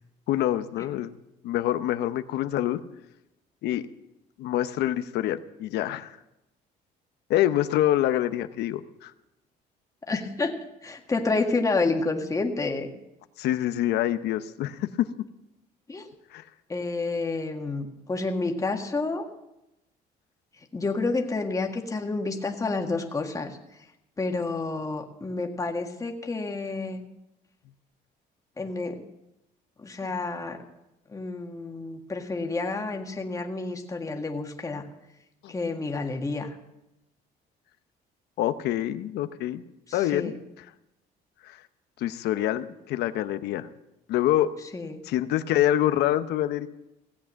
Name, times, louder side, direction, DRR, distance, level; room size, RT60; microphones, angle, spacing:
voice 1, 0.3-1.1 1.4-2.8 3.6-3.8 4.4-6.2 7.3-9.1 13.4-15.1 16.3-16.4 30.0-30.1 35.4-35.5 38.4-39.6 39.9-40.3 41.4-41.6 42.0-43.7 44.1-44.5 45.1-46.7, left 13 dB, 80° left, 11 dB, 0.8 m, -26 dB
voice 2, 10.1-10.5 10.8-12.9 15.9-16.1 16.7-19.2 20.7-23.6 24.2-27.0 28.6-29.0 29.8-30.6 31.1-34.8 35.5-36.6 39.9-40.4 44.7-45.0, left 3 dB, 20° left, 3 dB, 1.7 m, -29 dB
16.5 x 8.4 x 7.4 m, 0.91 s
cardioid pair, 110°, 17 cm